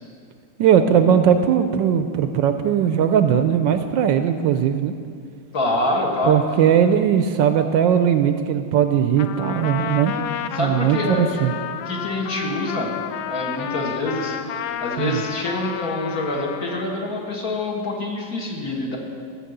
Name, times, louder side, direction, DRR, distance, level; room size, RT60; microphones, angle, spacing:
voice 1, 0.6-4.9 6.2-10.2 10.6-11.5 15.0-15.2, right 8 dB, 75° right, 8 dB, 1.2 m, -19 dB
voice 2, 5.5-6.4 9.8-9.9 10.5-11.4 11.9-12.9 13.3-19.0, left 2 dB, 50° left, -1 dB, 1.9 m, -26 dB
Trumpet, 9.2-17.0, left 9 dB, 75° left, 0.9 m, -31 dB
14.0 x 6.6 x 7.9 m, 2.2 s
omnidirectional pair, 2.2 m